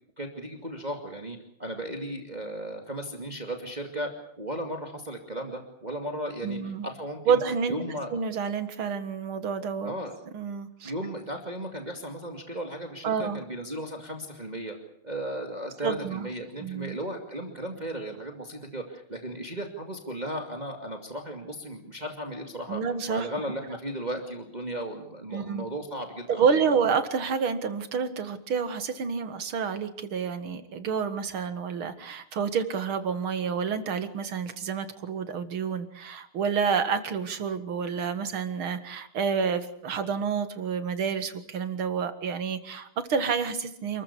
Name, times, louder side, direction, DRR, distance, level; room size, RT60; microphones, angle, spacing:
voice 1, 0.2-4.1 4.4-7.4 7.7-8.1 9.8-10.1 10.8-14.8 15.0-22.8 23.1-26.6, right 1 dB, 20° right, 4 dB, 2.5 m, -35 dB
voice 2, 6.4-6.9 7.3-7.8 8.1-10.0 10.3-10.9 13.0-13.4 15.8-16.3 16.6-17.0 22.7-23.3 25.3-25.7 26.3-44.0, right 6 dB, 80° right, 10 dB, 2.7 m, -29 dB
28.5 x 14.5 x 8.4 m, 0.71 s
omnidirectional pair, 2.3 m